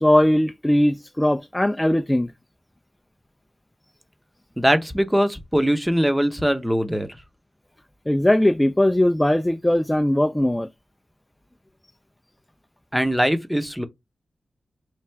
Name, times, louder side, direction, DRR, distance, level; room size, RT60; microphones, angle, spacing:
voice 1, 0.0-2.3 8.1-10.7, left 1 dB, 10° left, 0.3 m, -19 dB
voice 2, 4.6-7.1 12.9-13.8, equal, 5° right, 0.7 m, -21 dB
3.2 x 2.4 x 4.4 m
cardioid pair, 60°, 0 cm